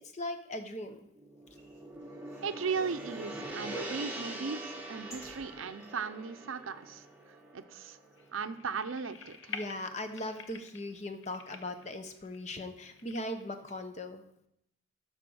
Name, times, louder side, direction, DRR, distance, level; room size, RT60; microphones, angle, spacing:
voice 1, 0.1-1.0 9.5-14.2, left 1 dB, 35° left, 7 dB, 0.8 m, -39 dB
Gong, 1.1-9.5, right 2 dB, 10° right, 1.3 m, -44 dB
sound 1, 1.4-3.6 4.0-5.9 6.5-6.6 6.8-6.9, right 1 dB, 15° left, 2.1 m, -57 dB
voice 2, 2.4-8.0 8.3-9.5, right 5 dB, 75° right, 11 dB, 0.6 m, -37 dB
sound 2, 8.2-13.7, left 6 dB, 65° left, 0.8 m, -49 dB
12.0 x 4.1 x 6.3 m, 0.78 s
head